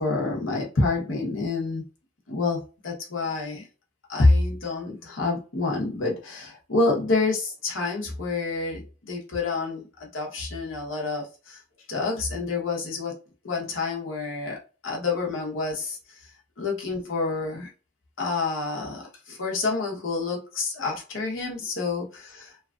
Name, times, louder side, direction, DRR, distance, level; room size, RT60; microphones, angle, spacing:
voice 1, 0.0-1.8 2.3-3.7 4.1-9.9 10.1-11.6 11.9-13.1 13.4-16.0 16.6-17.7 18.2-22.6, left 3 dB, 90° left, 1.0 m, -27 dB
3.1 x 2.3 x 2.4 m
head